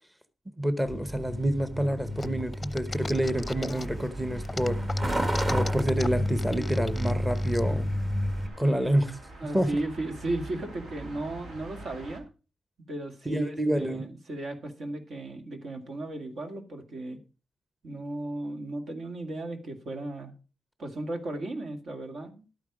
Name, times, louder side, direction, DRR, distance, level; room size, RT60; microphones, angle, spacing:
voice 1, 0.6-4.8 5.5-7.9 8.6-9.2 9.5-9.8 13.3-14.0, right 1 dB, 10° right, 0.8 m, -28 dB
Truck, 0.9-8.5, equal, 30° right, 1.6 m, -30 dB
sound 1, 2.2-4.1 4.4-7.6, left 3 dB, 20° left, 0.6 m, -38 dB
sound 2, 2.9-12.2, right 2 dB, 85° right, 2.8 m, -47 dB
voice 2, 9.4-12.3 12.9-17.2 17.8-20.3 20.8-22.5, right 2 dB, 70° right, 2.0 m, -35 dB
11.5 x 9.0 x 4.8 m
wide cardioid pair, 115°, 0 cm